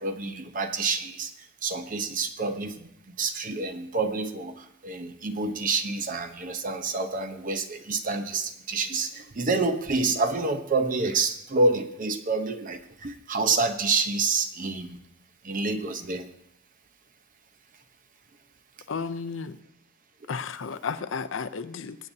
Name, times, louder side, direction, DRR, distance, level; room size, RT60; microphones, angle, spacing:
voice 1, 0.0-1.3 1.6-15.0 15.4-16.3, right 3 dB, 40° right, 7 dB, 0.8 m, -28 dB
voice 2, 18.9-19.6 20.3-22.0, left 5 dB, 65° left, 11 dB, 0.5 m, -33 dB
21.5 x 8.6 x 2.7 m, 0.78 s
head